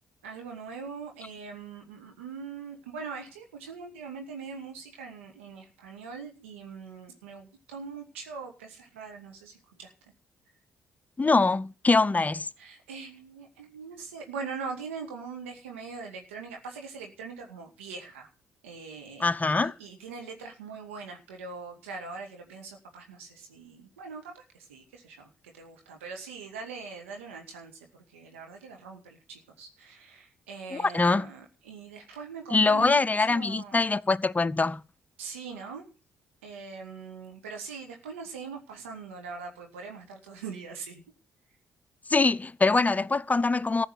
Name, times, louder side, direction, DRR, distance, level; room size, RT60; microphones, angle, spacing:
voice 1, 0.2-9.9 12.6-18.3 18.6-19.3 19.6-27.7 28.1-33.0 33.3-33.9 35.2-35.9 36.4-41.0, right 5 dB, 85° right, 2.1 m, -42 dB
voice 2, 11.2-12.5 19.2-19.7 30.7-31.3 32.5-34.8 42.1-43.9, left 3 dB, 25° left, 0.6 m, -23 dB
14.5 x 5.6 x 9.2 m
hypercardioid pair, 45°, 7 cm